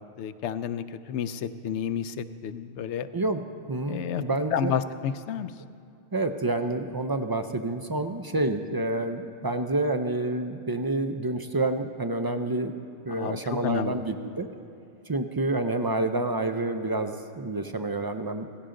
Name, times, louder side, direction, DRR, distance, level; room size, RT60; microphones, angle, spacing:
voice 1, 0.0-3.1 3.9-4.2 4.5-5.5 13.1-14.0, left 8 dB, 85° left, 12 dB, 0.9 m, -31 dB
voice 2, 3.7-4.8 6.1-12.8 13.0-14.5 15.1-18.5, right 2 dB, 40° right, 7 dB, 0.3 m, -28 dB
16.5 x 15.5 x 3.8 m, 2.5 s
omnidirectional pair, 1.1 m